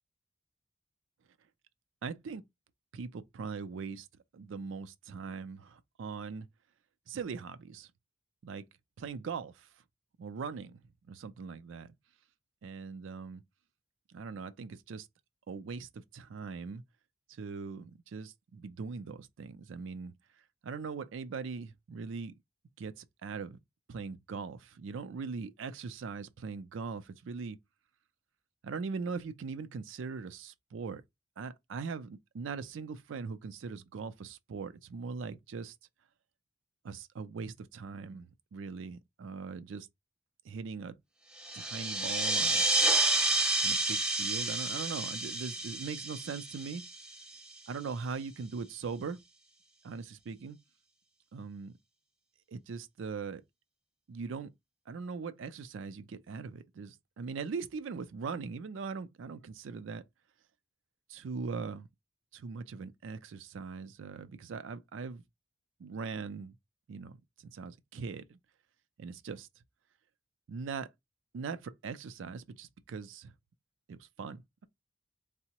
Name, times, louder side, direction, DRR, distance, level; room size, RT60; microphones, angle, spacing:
voice 1, 2.0-2.4 2.9-4.1 4.3-6.5 7.1-7.9 8.4-8.6 9.0-9.7 10.2-10.8 11.1-11.9 12.6-13.4 14.1-15.1 15.5-16.8 17.3-20.1 20.6-22.3 22.8-23.6 23.9-27.6 28.6-31.0 31.4-35.7 36.8-38.3 38.5-39.9 40.4-41.0 41.5-42.7 43.6-46.8 47.7-49.2 49.8-50.6 51.3-51.7 52.5-53.4 54.1-54.5 54.9-60.0 61.1-61.9 62.3-65.2 65.8-66.5 66.9-68.4 69.0-69.5 70.5-70.9 71.3-73.3 73.9-74.7, right 5 dB, 90° right, 0.4 m, -40 dB
sound 1, 41.4-47.5, right 2 dB, 5° right, 0.4 m, -30 dB
3.6 x 2.0 x 2.8 m
head